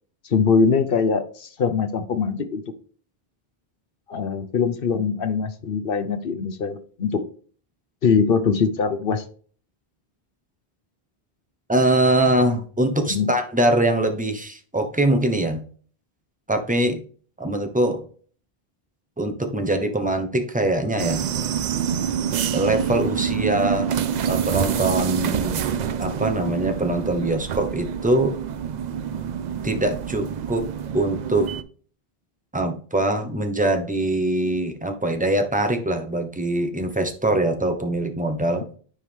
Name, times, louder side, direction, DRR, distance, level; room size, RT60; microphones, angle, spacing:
voice 1, 0.2-2.6 4.1-7.2 8.0-9.2 13.1-13.3, left 5 dB, 65° left, 10 dB, 1.0 m, -22 dB
voice 2, 11.7-15.6 16.5-17.0 17.4-18.0 19.2-21.3 22.5-23.9 24.3-25.7 26.0-28.3 29.6-30.7 30.9-31.5 32.5-38.6, right 1 dB, 10° right, 5 dB, 1.0 m, -23 dB
sound 1, 21.0-31.6, right 8 dB, 55° right, 0.5 m, -26 dB
9.9 x 4.7 x 3.6 m, 0.43 s
omnidirectional pair, 1.0 m